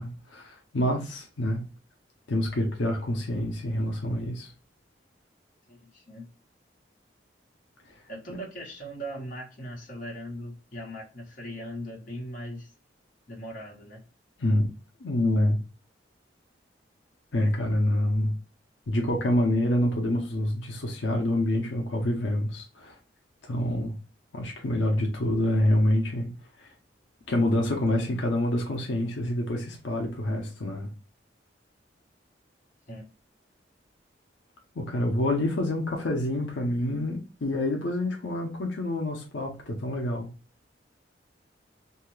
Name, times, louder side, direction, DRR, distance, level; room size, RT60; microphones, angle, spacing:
voice 1, 0.0-1.6 2.3-4.5 14.4-14.7 15.0-15.6 17.3-18.3 18.9-22.9 23.5-23.9 24.3-26.3 26.6-26.7 27.3-30.9 34.8-40.3, left 1 dB, 90° left, 0.7 m, -27 dB
voice 2, 5.7-6.3 8.1-12.7 13.3-14.0 32.9-33.1, equal, 45° left, 1.1 m, -39 dB
2.7 x 2.3 x 3.1 m
head